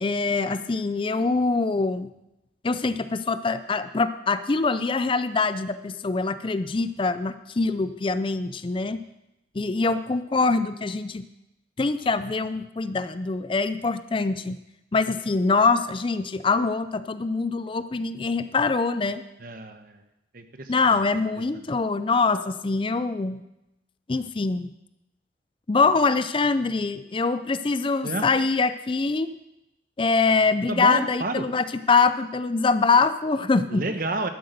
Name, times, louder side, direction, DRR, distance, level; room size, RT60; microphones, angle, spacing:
voice 1, 0.0-2.1 2.6-9.0 9.5-11.2 11.8-14.6 14.9-19.2 20.7-23.4 24.1-24.7 25.7-29.3 30.0-33.8, left 4 dB, 30° left, 12 dB, 0.4 m, -24 dB
voice 2, 19.4-20.0 20.3-21.0 21.5-21.8 28.0-28.3 30.7-31.5 33.7-34.3, right 2 dB, 50° right, 8 dB, 1.1 m, -30 dB
12.5 x 7.9 x 6.7 m, 0.90 s
head